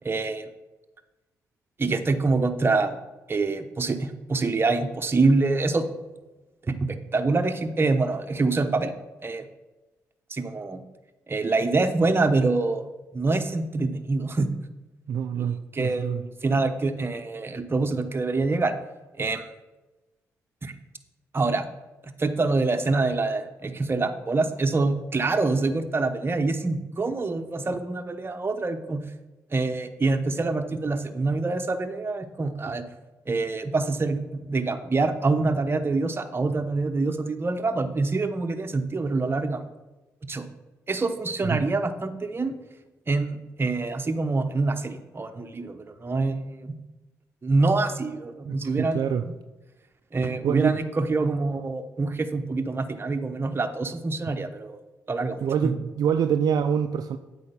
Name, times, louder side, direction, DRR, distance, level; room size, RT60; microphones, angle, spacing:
voice 1, 0.0-0.5 1.8-3.0 3.3-5.9 6.6-8.9 9.2-9.5 10.3-10.8 11.3-12.9 13.1-14.5 15.3-18.7 19.2-19.5 20.6-20.7 21.3-21.7 22.0-29.0 29.5-32.8 33.3-39.6 40.3-40.5 40.9-42.5 43.1-46.7 47.4-49.3 50.1-54.8 55.1-55.7, right 3 dB, 35° right, 7 dB, 1.0 m, -25 dB
voice 2, 15.1-16.2 41.4-41.6 48.4-49.2 50.2-50.8 55.4-57.2, right 8 dB, 65° right, 8 dB, 0.5 m, -26 dB
8.3 x 4.9 x 6.8 m, 1.1 s
supercardioid pair, 55°, 7 cm